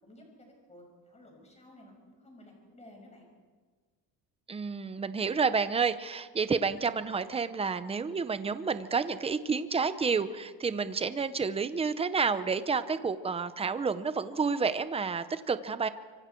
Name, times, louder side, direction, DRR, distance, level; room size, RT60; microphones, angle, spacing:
voice 1, 0.0-3.3, left 1 dB, 15° left, 1 dB, 5.8 m, -54 dB
voice 2, 4.5-15.9, right 5 dB, 15° right, 12 dB, 0.7 m, -30 dB
25.5 x 24.0 x 4.5 m, 1.5 s
cardioid pair, 165°, 38 cm